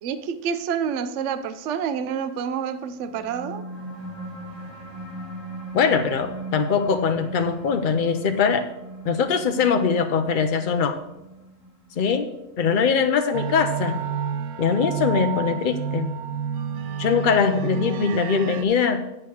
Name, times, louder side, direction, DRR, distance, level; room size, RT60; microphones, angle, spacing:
voice 1, 0.0-3.6 17.7-17.9, right 7 dB, 65° right, 10 dB, 0.8 m, -28 dB
sound 1, 2.9-13.9, right 2 dB, 20° right, 1.3 m, -39 dB
voice 2, 5.7-8.7 9.0-11.0 12.0-12.3 12.6-14.0 14.6-16.2 17.0-19.0, left 6 dB, 70° left, 7 dB, 0.4 m, -22 dB
sound 2, 13.3-18.6, right 7 dB, 85° right, 1.1 m, -29 dB
8.6 x 4.8 x 6.9 m, 0.94 s
omnidirectional pair, 1.5 m